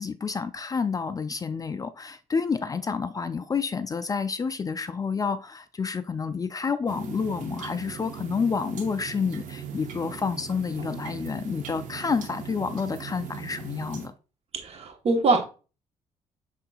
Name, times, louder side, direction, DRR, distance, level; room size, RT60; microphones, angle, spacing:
voice 1, 0.0-14.1, left 5 dB, 25° left, 0.3 m, -29 dB
sound 1, 6.9-14.1, right 8 dB, 75° right, 0.8 m, -40 dB
voice 2, 14.6-15.4, right 3 dB, 50° right, 1.1 m, -23 dB
5.6 x 3.8 x 2.3 m
cardioid pair, 90°, 13 cm